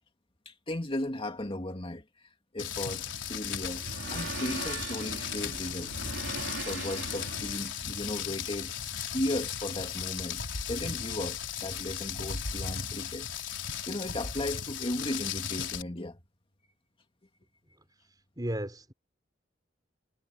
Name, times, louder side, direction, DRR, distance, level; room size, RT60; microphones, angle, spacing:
voice 1, 0.5-2.0 2.5-3.8 4.1-6.0 6.6-8.7 9.1-10.4 10.7-13.3 13.9-16.2, left 1 dB, 30° left, 2.4 m, -36 dB
Rain, 2.6-15.8, left 8 dB, 70° left, 4.9 m, -36 dB
sound 1, 2.7-7.9, right 4 dB, 75° right, 3.3 m, -41 dB
voice 2, 18.0-18.9, right 1 dB, 20° right, 4.4 m, -36 dB
head